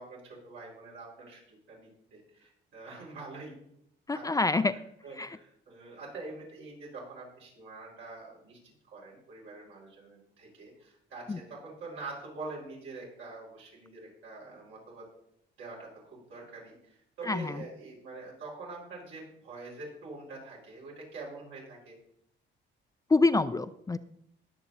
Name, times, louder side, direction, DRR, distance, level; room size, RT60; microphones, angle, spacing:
voice 1, 0.0-3.5 4.1-4.6 5.0-8.6 8.9-15.1 15.6-21.9, right 3 dB, 85° right, -4 dB, 4.9 m, -45 dB
voice 2, 4.1-4.7 5.2-5.3 11.3-11.4 17.3-17.6 23.1-24.0, left 3 dB, 15° left, 12 dB, 0.4 m, -26 dB
20.0 x 6.8 x 2.8 m, 0.74 s
cardioid pair, 90°, 20 cm